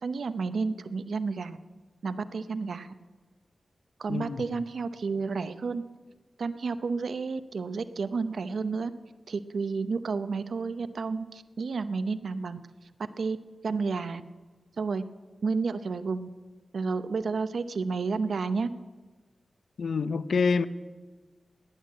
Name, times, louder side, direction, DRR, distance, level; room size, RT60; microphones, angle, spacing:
voice 1, 0.0-1.6 2.0-2.9 4.0-5.8 6.4-8.9 9.3-12.6 13.2-13.4 13.6-14.2 14.8-15.0 15.4-16.3 16.7-18.7, right 4 dB, 70° right, 11 dB, 0.7 m, -31 dB
voice 2, 4.1-4.4 19.8-20.7, left 5 dB, 70° left, 13 dB, 0.6 m, -26 dB
18.0 x 10.5 x 7.5 m, 1.3 s
wide cardioid pair, 120°, 0 cm